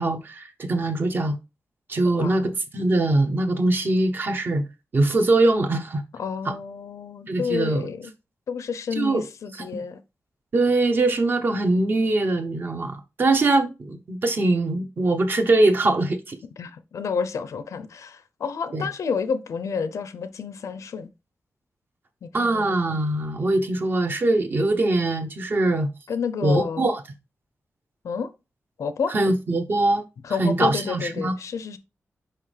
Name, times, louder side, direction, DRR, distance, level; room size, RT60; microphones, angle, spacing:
voice 1, 0.0-1.4 1.9-4.6 4.9-6.0 6.4-6.5 7.3-7.9 8.9-9.2 9.6-9.8 10.5-16.4 18.7-18.9 22.3-25.9 26.4-27.0 29.1-30.0 30.4-31.3, right 2 dB, 40° right, 0.8 m, -22 dB
voice 2, 2.1-2.5 6.1-8.1 8.5-10.0 16.6-21.1 22.2-22.7 26.1-26.9 28.0-28.3 28.8-29.1 30.2-31.8, left 6 dB, 80° left, 0.6 m, -30 dB
5.8 x 5.0 x 3.3 m
wide cardioid pair, 175°, 5 cm